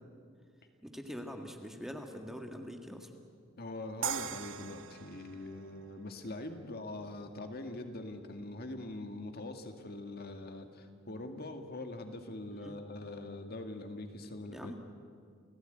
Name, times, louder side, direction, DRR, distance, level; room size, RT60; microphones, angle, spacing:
voice 1, 0.8-3.1 12.6-12.8 14.5-14.7, equal, ahead, 3 dB, 1.9 m, -43 dB
voice 2, 3.6-14.7, left 2 dB, 50° left, 5 dB, 2.0 m, -43 dB
sound 1, 4.0-7.1, right 8 dB, 70° right, 0.9 m, -41 dB
29.5 x 16.5 x 9.2 m, 2.2 s
head